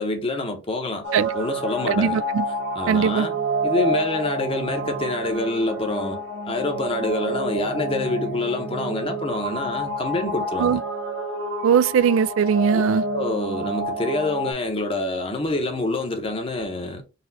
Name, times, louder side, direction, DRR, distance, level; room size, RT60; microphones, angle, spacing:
voice 1, 0.0-1.0 1.3-2.2 2.7-3.3 3.6-6.2 6.4-10.8 12.7-12.8 13.1-17.0, left 2 dB, 30° left, 0.8 m, -26 dB
sound 1, 1.0-14.5, right 1 dB, 65° right, 1.1 m, -29 dB
voice 2, 1.9-2.4 2.9-3.3 10.6-10.8 11.6-13.0, right 7 dB, 90° right, 0.3 m, -20 dB
4.1 x 2.3 x 4.1 m
head